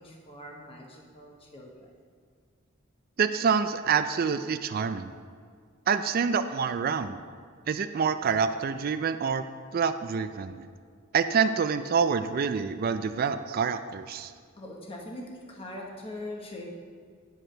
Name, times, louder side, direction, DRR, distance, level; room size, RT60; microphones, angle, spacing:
voice 1, 0.0-1.9 6.1-6.2 14.6-16.7, left 1 dB, 25° left, -1 dB, 1.1 m, -42 dB
voice 2, 3.2-5.1 5.9-7.2 7.7-9.4 9.7-10.7 11.1-14.3, right 6 dB, 45° right, 10 dB, 0.3 m, -27 dB
10.5 x 4.8 x 6.5 m, 2.1 s
head